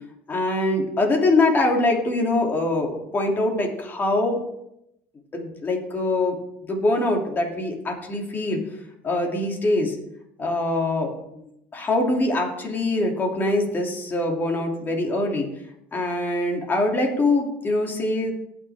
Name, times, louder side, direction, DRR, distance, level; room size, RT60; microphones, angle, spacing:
voice 1, 0.3-4.4 5.3-6.4 6.6-8.6 9.0-10.0 10.4-11.5 11.7-15.5 15.9-18.3, left 2 dB, 30° left, 1 dB, 2.8 m, -23 dB
18.5 x 6.3 x 3.6 m, 0.80 s
supercardioid pair, 100°, 7 cm